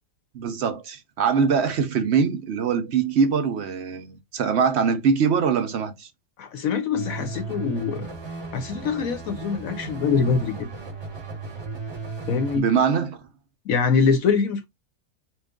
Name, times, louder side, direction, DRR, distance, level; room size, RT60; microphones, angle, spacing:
voice 1, 0.3-6.1 12.6-13.2, right 6 dB, 65° right, 0.6 m, -23 dB
voice 2, 6.4-8.1 8.5-10.7 12.3-12.7 13.7-14.6, left 5 dB, 65° left, 0.9 m, -24 dB
sound 1, 6.9-12.6, right 3 dB, 25° right, 0.7 m, -35 dB
3.1 x 2.4 x 3.5 m
omnidirectional pair, 1.7 m